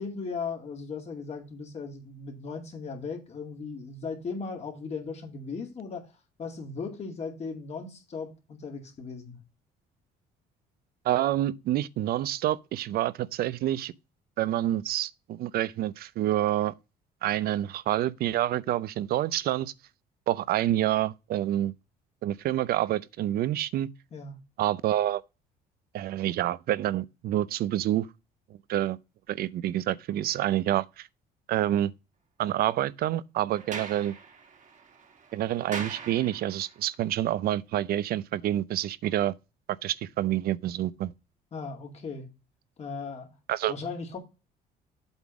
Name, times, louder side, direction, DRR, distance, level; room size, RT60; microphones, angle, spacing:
voice 1, 0.0-6.1 6.4-9.4 24.1-24.4 41.5-42.3 42.8-43.3 43.7-44.2, left 4 dB, 40° left, 2.2 m, -37 dB
voice 2, 11.0-13.9 14.4-16.7 17.2-19.7 20.3-21.7 22.2-23.9 24.6-25.2 25.9-28.1 28.7-29.0 29.3-31.1 31.5-31.9 32.4-34.1 35.3-39.3 39.8-41.1 43.5-43.7, right 13 dB, 65° right, 0.6 m, -27 dB
Sliding door, 33.5-36.8, right 5 dB, 45° right, 2.0 m, -41 dB
8.0 x 3.7 x 6.0 m
cardioid pair, 110°, 17 cm